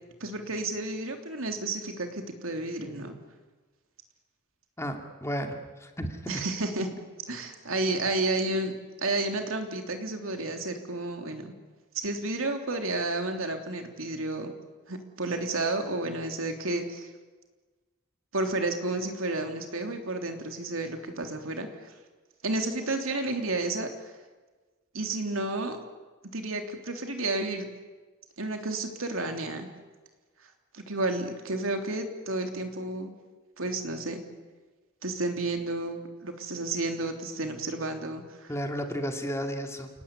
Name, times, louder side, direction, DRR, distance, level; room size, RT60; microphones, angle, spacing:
voice 1, 0.2-3.1 6.3-6.9 7.3-8.7 9.0-11.5 12.0-14.5 14.9-17.1 18.3-21.9 22.4-23.9 24.9-25.8 26.3-27.7 28.4-29.7 30.7-33.1 33.6-34.2 35.0-38.5, right 2 dB, 70° right, 5 dB, 3.3 m, -31 dB
voice 2, 4.8-6.2 38.5-39.9, equal, 15° left, 4 dB, 2.5 m, -33 dB
29.5 x 18.5 x 9.9 m, 1.3 s
head